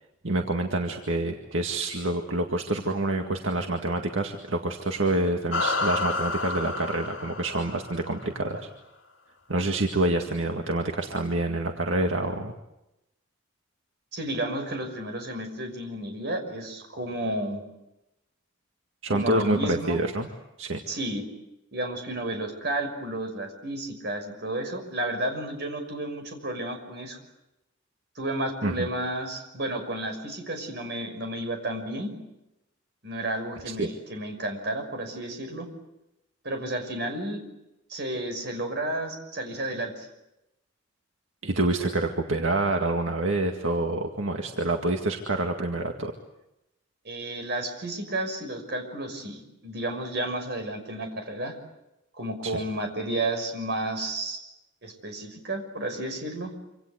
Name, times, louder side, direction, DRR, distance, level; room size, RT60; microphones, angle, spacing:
voice 1, 0.2-8.7 9.5-12.5 19.0-20.3 20.6-20.8 28.6-28.9 33.8-33.9 41.4-46.1 52.4-52.5, right 2 dB, 80° right, 3 dB, 2.1 m, -27 dB
sound 1, 5.5-8.3, left 3 dB, 70° left, 2.9 m, -30 dB
voice 2, 14.1-17.6 19.1-20.0 20.9-21.2 21.7-27.2 28.2-32.1 33.0-35.7 36.4-37.4 37.9-40.1 47.0-51.5 52.2-54.4 54.8-56.5, right 1 dB, 55° right, 5 dB, 6.0 m, -32 dB
27.0 x 26.5 x 8.1 m, 0.89 s
head